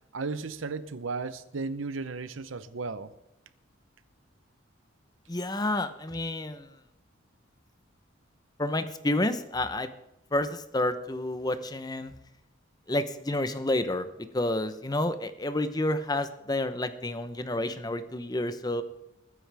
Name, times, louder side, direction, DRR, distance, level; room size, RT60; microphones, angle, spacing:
voice 1, 0.1-3.1, right 4 dB, 90° right, 0.8 m, -35 dB
voice 2, 5.3-6.8 8.6-9.9 10.3-12.1 12.9-18.8, left 1 dB, 20° left, 0.8 m, -30 dB
21.5 x 9.9 x 3.5 m
head